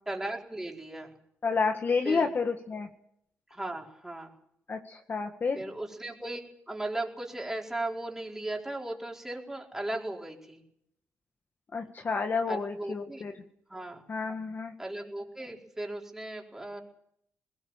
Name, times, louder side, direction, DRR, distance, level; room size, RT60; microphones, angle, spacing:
voice 1, 0.1-1.2 2.0-2.3 3.5-4.3 5.5-6.4 6.7-10.6 12.5-13.3 13.7-14.0 14.8-16.8, right 2 dB, 10° right, 0 dB, 4.7 m, -37 dB
voice 2, 1.4-2.9 4.7-5.6 11.7-13.3 14.1-14.7, left 4 dB, 35° left, 5 dB, 1.9 m, -30 dB
21.0 x 19.0 x 7.4 m, 0.70 s
cardioid pair, 110°, 5 cm